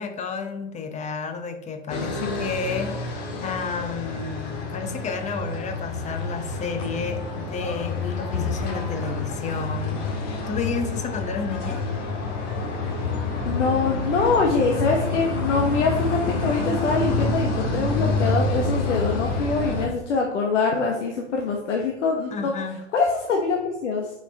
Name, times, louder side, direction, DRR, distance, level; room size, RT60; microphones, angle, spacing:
voice 1, 0.0-3.0 3.4-11.8 22.3-22.8, left 5 dB, 20° left, 7 dB, 0.9 m, -31 dB
sound 1, 1.9-19.9, left 3 dB, 55° left, 1.9 m, -28 dB
voice 2, 13.5-22.5 22.9-24.1, left 4 dB, 75° left, 1 dB, 1.2 m, -24 dB
8.6 x 5.3 x 3.4 m, 0.90 s
hypercardioid pair, 115°, 36 cm